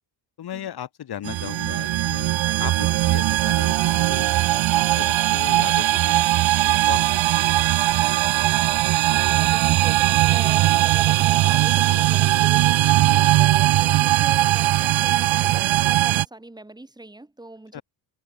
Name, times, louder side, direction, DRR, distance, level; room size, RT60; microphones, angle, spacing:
voice 1, 0.4-2.3 2.6-4.3 4.7-6.4 6.6-7.3 13.0-13.2 17.7-17.8, left 10 dB, 50° left, 6.5 m, -36 dB
sound 1, 1.2-16.3, right 15 dB, 70° right, 1.6 m, -19 dB
voice 2, 9.1-17.8, right 2 dB, 10° right, 5.8 m, -41 dB
cardioid pair, 165°, 47 cm